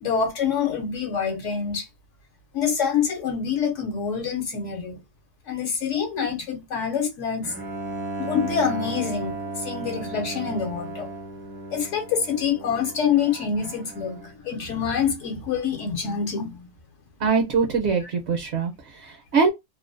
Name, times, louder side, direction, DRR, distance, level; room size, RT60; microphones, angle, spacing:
voice 1, 0.0-1.9 2.5-5.0 5.5-7.5 8.2-11.1 11.7-16.7 18.0-18.1, left 7 dB, 75° left, 1.0 m, -26 dB
Bowed string instrument, 7.4-14.4, right 2 dB, 15° right, 0.4 m, -35 dB
voice 2, 17.2-19.5, right 5 dB, 65° right, 0.8 m, -23 dB
2.5 x 2.0 x 2.4 m
omnidirectional pair, 1.3 m